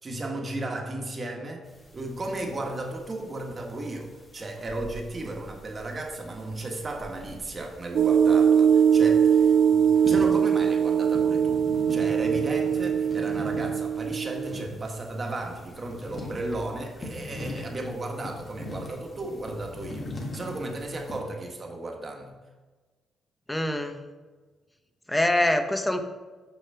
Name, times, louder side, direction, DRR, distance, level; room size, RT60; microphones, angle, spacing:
voice 1, 0.0-1.7 1.9-22.3, right 2 dB, 35° right, 2 dB, 1.5 m, -35 dB
sound 1, 1.6-21.2, left 2 dB, 30° left, 1.7 m, -42 dB
sound 2, 7.9-14.6, right 7 dB, 60° right, 0.4 m, -21 dB
voice 2, 23.5-24.0 25.1-26.0, left 1 dB, 10° left, 8 dB, 0.8 m, -24 dB
6.9 x 5.6 x 5.6 m, 1.3 s
cardioid pair, 90°, 0 cm